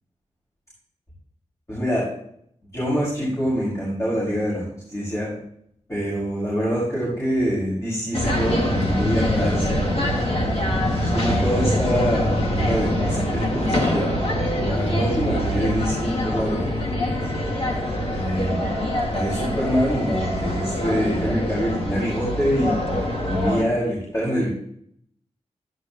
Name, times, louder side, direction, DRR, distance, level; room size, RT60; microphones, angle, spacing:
voice 1, 1.7-2.0 2.7-4.6 4.9-5.4 5.9-10.1 11.0-14.1 14.6-17.1 18.1-18.7 19.1-22.9 23.2-24.5, equal, 25° left, -7 dB, 6.0 m, -25 dB
sound 1, 8.1-23.6, left 1 dB, 55° left, 2.3 m, -24 dB
13.5 x 11.5 x 3.1 m, 0.68 s
wide cardioid pair, 85°, 12 cm